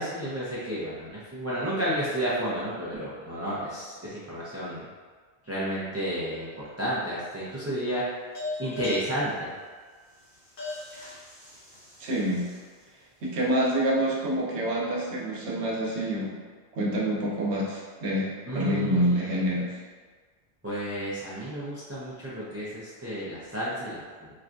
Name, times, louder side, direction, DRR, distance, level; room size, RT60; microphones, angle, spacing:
voice 1, 0.0-4.9 5.4-8.0 8.6-9.5 18.5-19.2 20.6-24.3, equal, 20° right, -9 dB, 0.4 m, -32 dB
sound 1, 6.3-7.0 8.3-12.8, left 2 dB, 55° left, 1.1 m, -40 dB
voice 2, 12.0-12.4 13.2-16.3 16.7-19.7, equal, 85° right, -4 dB, 1.0 m, -27 dB
4.2 x 2.3 x 2.5 m, 1.5 s
omnidirectional pair, 1.1 m